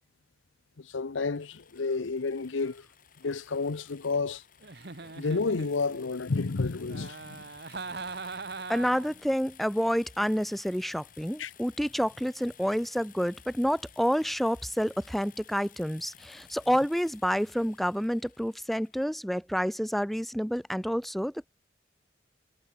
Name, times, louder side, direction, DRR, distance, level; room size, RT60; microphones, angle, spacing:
voice 1, 0.8-2.8 3.2-4.4 5.2-7.4 11.4-11.5, left 4 dB, 85° left, 0.7 m, -30 dB
sound 1, 1.3-19.1, left 8 dB, 45° left, 2.3 m, -56 dB
Giggle, 4.6-6.1 6.9-9.2, right 4 dB, 55° right, 1.5 m, -41 dB
voice 2, 8.7-21.5, equal, ahead, 0.6 m, -29 dB
head